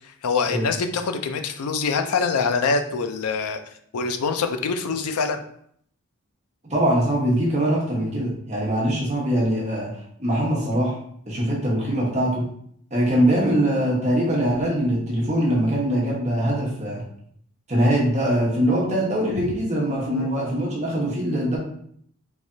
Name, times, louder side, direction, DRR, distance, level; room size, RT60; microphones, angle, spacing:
voice 1, 0.2-3.6 3.9-5.4 11.3-11.4 20.1-20.3, left 5 dB, 90° left, 6 dB, 0.4 m, -24 dB
voice 2, 6.6-10.9 11.3-12.5 12.9-17.1 17.7-21.6, right 1 dB, 30° right, -4 dB, 1.0 m, -22 dB
3.3 x 3.2 x 2.7 m, 0.66 s
head